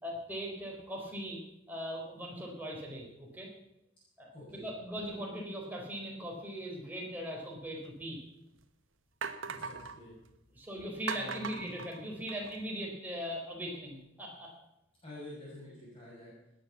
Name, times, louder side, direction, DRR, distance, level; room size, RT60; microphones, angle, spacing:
voice 1, 0.0-3.5 4.2-8.2 10.6-14.5, equal, 10° right, -1 dB, 4.0 m, -40 dB
voice 2, 4.3-4.7 9.4-10.1 11.1-11.4 15.0-16.3, left 1 dB, 25° left, -8 dB, 7.1 m, -48 dB
sound 1, 7.8-7.9 8.6-8.7 9.2-10.0 11.1-12.6, right 5 dB, 70° right, 1.2 m, -39 dB
19.0 x 9.2 x 7.3 m, 0.85 s
head